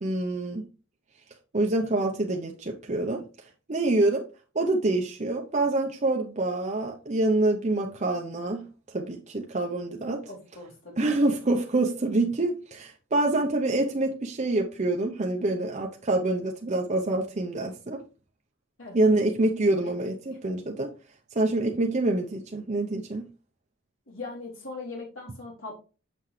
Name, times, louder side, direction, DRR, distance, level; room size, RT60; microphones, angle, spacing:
voice 1, 0.0-0.7 1.5-3.3 3.7-4.3 4.5-8.7 8.9-10.2 11.0-18.0 18.9-20.9 21.3-23.3, right 2 dB, 35° right, 0.6 m, -26 dB
voice 2, 10.3-11.4 18.8-19.1 24.1-25.8, left 3 dB, 80° left, 3.4 m, -40 dB
6.9 x 5.8 x 3.1 m
head